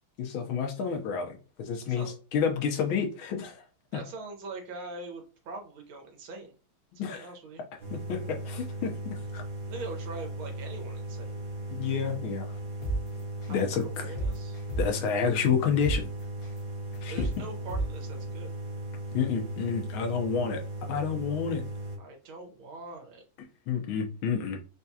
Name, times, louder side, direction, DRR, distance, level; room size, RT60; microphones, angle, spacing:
voice 1, 0.2-3.6 3.9-4.0 6.9-7.3 7.9-9.4 11.7-12.6 13.5-14.1 14.8-16.1 17.0-17.3 19.1-20.6 20.9-21.6 23.7-24.6, left 6 dB, 80° left, 1.6 m, -29 dB
voice 2, 1.9-2.2 3.9-6.5 7.0-7.6 9.7-11.4 13.5-14.6 17.1-18.5 22.0-23.2, right 3 dB, 85° right, 1.9 m, -42 dB
sound 1, 7.8-22.0, right 2 dB, 50° right, 1.4 m, -37 dB
sound 2, 12.8-13.0 13.4-13.6 13.9-15.1 15.4-15.5 15.8-16.0 16.4-16.6 16.9-17.3 17.7-17.8, right 2 dB, 35° left, 1.2 m, -30 dB
4.6 x 2.3 x 2.7 m
omnidirectional pair, 2.2 m